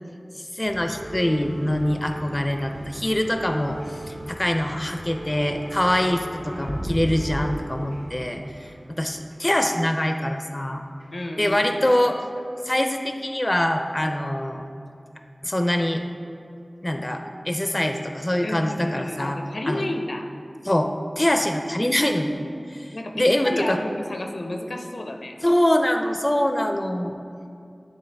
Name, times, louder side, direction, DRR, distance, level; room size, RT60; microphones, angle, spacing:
voice 1, 0.5-8.7 9.0-10.8 11.4-12.2 12.7-14.6 15.4-16.0 16.8-19.4 19.7-19.8 20.7-20.9 21.2-23.8 25.4-27.2, left 1 dB, 25° left, 5 dB, 0.4 m, -24 dB
sound 1, 0.6-10.1 11.0-12.1 12.4-12.6 13.5-13.6, right 1 dB, 20° right, 0.8 m, -36 dB
voice 2, 11.1-11.7 18.4-20.3 22.8-25.3, left 1 dB, 80° left, 3 dB, 0.5 m, -31 dB
9.4 x 3.5 x 3.3 m, 2.5 s
wide cardioid pair, 45°, 0 cm